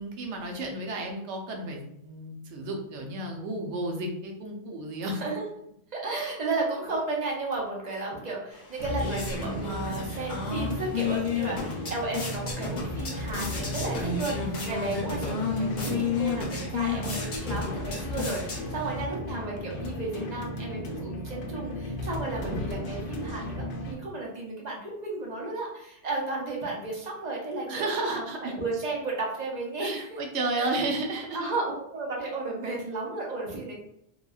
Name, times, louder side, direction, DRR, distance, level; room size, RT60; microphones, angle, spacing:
voice 1, 0.0-5.3 27.7-28.6 29.8-31.4, right 2 dB, 80° right, 2 dB, 0.9 m, -32 dB
voice 2, 5.1-5.5 5.9-30.2 30.5-30.8 31.3-33.8, right 3 dB, 45° right, -2 dB, 0.6 m, -33 dB
sound 1, 8.5-19.0, left 5 dB, 50° left, 0.7 m, -32 dB
sound 2, 8.8-23.9, left 1 dB, 85° left, 0.9 m, -35 dB
3.0 x 2.2 x 2.3 m, 0.78 s
omnidirectional pair, 1.2 m